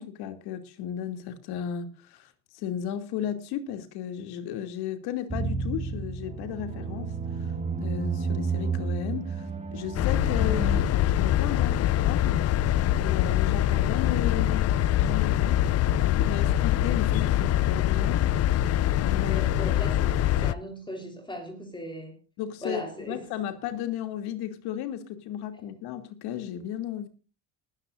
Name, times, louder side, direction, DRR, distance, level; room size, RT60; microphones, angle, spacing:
voice 1, 0.0-7.1 7.4-7.5 7.7-12.4 12.9-15.6 16.0-18.3 19.0-19.8 22.4-27.1, left 10 dB, 75° left, 2.8 m, -34 dB
sound 1, 5.3-10.8, right 5 dB, 15° right, 2.0 m, -31 dB
sound 2, 9.9-20.5, left 12 dB, 40° left, 0.5 m, -24 dB
voice 2, 19.2-22.2 22.6-23.3, left 1 dB, 10° left, 4.0 m, -38 dB
19.5 x 13.5 x 2.6 m
cardioid pair, 130°, 39 cm